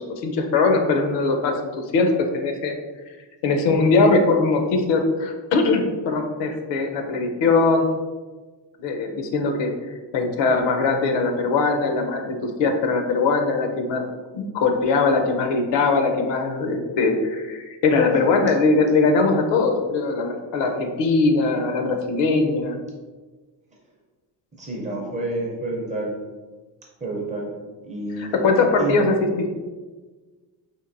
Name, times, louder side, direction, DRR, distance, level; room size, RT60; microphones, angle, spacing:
voice 1, 0.0-2.7 3.4-7.9 8.8-9.7 10.1-14.0 14.3-22.8 28.2-29.5, left 3 dB, 75° left, 4 dB, 0.6 m, -21 dB
voice 2, 24.5-26.1 27.0-27.5 27.8-28.4 28.8-29.0, right 2 dB, 20° right, -3 dB, 0.5 m, -29 dB
4.4 x 2.5 x 2.5 m, 1.3 s
cardioid pair, 180°, 43 cm